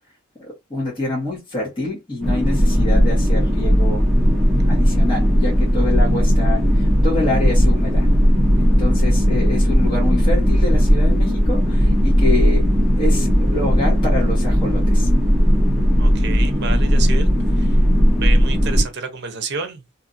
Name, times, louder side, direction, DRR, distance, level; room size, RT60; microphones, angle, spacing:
voice 1, 0.4-4.0 4.7-8.1 8.6-12.6 13.0-15.1, left 2 dB, 25° left, 1.2 m, -26 dB
sound 1, 2.2-18.8, equal, ahead, 0.8 m, -16 dB
voice 2, 16.0-17.3 17.6-17.8 18.2-20.1, right 5 dB, 55° right, 0.7 m, -29 dB
2.8 x 2.5 x 2.5 m
head